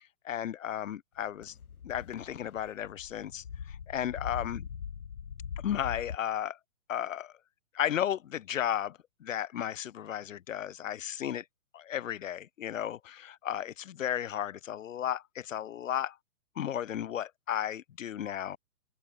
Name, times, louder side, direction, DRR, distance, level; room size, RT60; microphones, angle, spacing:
voice 1, 0.0-1.5 1.8-4.6 5.6-6.6 6.9-7.3 7.7-11.4 11.7-16.2 16.6-18.6, left 10 dB, 60° left, 0.9 m, -34 dB
sound 1, 1.4-6.2, left 7 dB, 80° left, 2.2 m, -42 dB
open air
hypercardioid pair, 155°, 43 cm